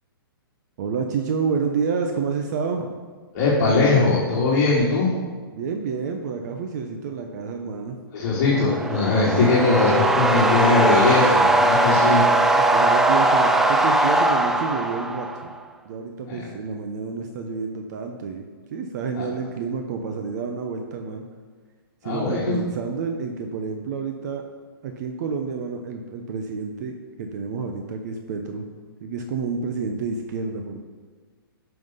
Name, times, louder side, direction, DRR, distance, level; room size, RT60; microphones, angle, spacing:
voice 1, 0.8-2.9 5.5-8.0 9.3-9.7 11.6-15.5 15.8-18.4 18.7-21.2 22.0-24.4 24.8-26.9 27.2-28.7 29.0-30.8, right 5 dB, 45° right, 4 dB, 0.9 m, -29 dB
voice 2, 3.3-5.1 8.1-12.2 16.3-16.4 19.2-19.3 22.0-22.6, left 3 dB, 45° left, -7 dB, 2.3 m, -20 dB
sound 1, 8.4-15.5, right 2 dB, 5° right, 0.3 m, -20 dB
10.5 x 5.8 x 5.6 m, 1.5 s
hypercardioid pair, 145°, 13 cm